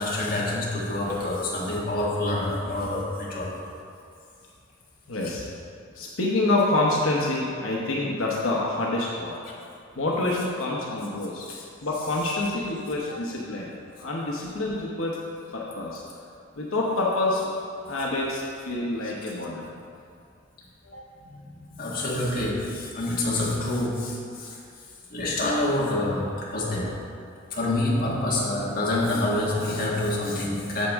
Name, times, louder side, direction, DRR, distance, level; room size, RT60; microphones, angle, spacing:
voice 1, 0.0-3.6 5.2-5.3 11.5-11.6 19.0-19.1 21.2-24.6 25.1-27.0 27.5-30.9, left 1 dB, 45° left, -5 dB, 1.6 m, -27 dB
voice 2, 5.1-5.4 5.9-9.3 10.0-11.5 11.8-13.7 14.0-15.2 15.5-16.0 16.6-17.4 17.9-19.6 20.8-21.0, left 2 dB, 80° left, -4 dB, 0.9 m, -27 dB
8.3 x 7.2 x 3.5 m, 2.4 s
head